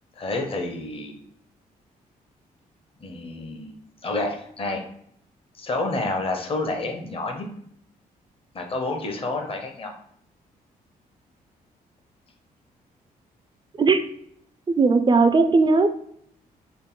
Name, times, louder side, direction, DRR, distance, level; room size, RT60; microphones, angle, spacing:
voice 1, 0.2-1.2 3.0-3.7 4.0-4.8 5.6-7.5 8.5-9.9, left 2 dB, 35° left, 3 dB, 0.7 m, -29 dB
voice 2, 14.8-15.9, right 4 dB, 30° right, 8 dB, 0.4 m, -17 dB
3.7 x 2.0 x 3.8 m, 0.68 s
cardioid pair, 80°, 16 cm